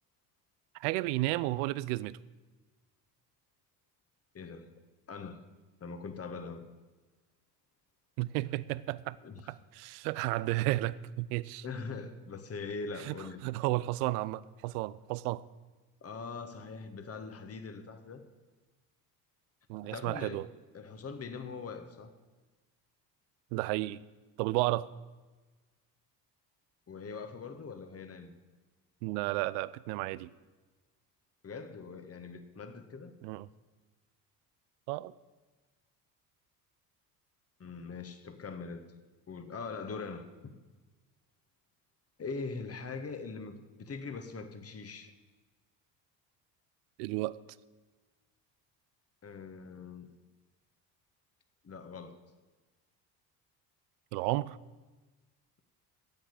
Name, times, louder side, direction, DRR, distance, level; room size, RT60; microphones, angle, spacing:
voice 1, 0.8-2.2 8.2-9.2 9.5-11.6 13.1-13.2 13.4-15.4 19.7-20.5 23.5-24.0 24.4-24.9 29.0-30.3 33.2-33.5 34.9-35.1 47.0-47.4 54.1-54.6, right 18 dB, 70° right, 19 dB, 0.6 m, -32 dB
voice 2, 4.3-4.7 5.1-5.4 5.8-6.7 9.2-9.5 11.6-13.4 16.0-18.2 19.8-20.5 20.7-22.1 26.9-28.3 31.4-33.1 37.6-38.8 39.3-40.3 42.2-45.1 49.2-50.1 51.6-52.2, left 4 dB, 30° left, 8 dB, 1.5 m, -42 dB
10.5 x 7.9 x 8.7 m, 1.2 s
hypercardioid pair, 60°, 48 cm